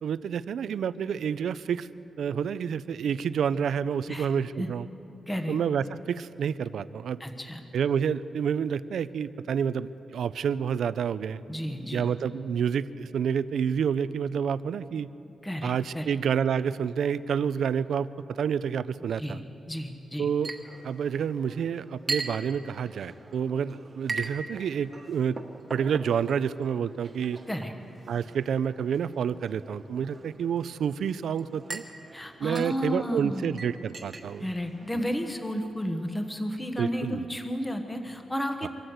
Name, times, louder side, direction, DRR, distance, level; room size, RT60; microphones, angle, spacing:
voice 1, 0.0-1.9 2.2-4.9 5.5-7.2 7.7-11.4 11.9-15.1 15.6-19.4 20.2-20.5 20.8-25.4 25.7-27.4 28.1-31.8 32.4-34.5 34.9-35.0 36.8-37.3 38.6-38.7, right 7 dB, 80° right, 15 dB, 0.5 m, -29 dB
voice 2, 5.3-5.6 7.2-7.6 11.5-12.1 15.4-16.1 19.2-19.4 19.7-20.3 27.5-27.7 32.1-33.6 34.4-38.7, equal, 10° left, 5 dB, 1.2 m, -32 dB
Chink clink, 20.4-35.5, right 3 dB, 30° right, 1.4 m, -41 dB
24.0 x 14.0 x 8.0 m, 2.9 s
wide cardioid pair, 175°, 0 cm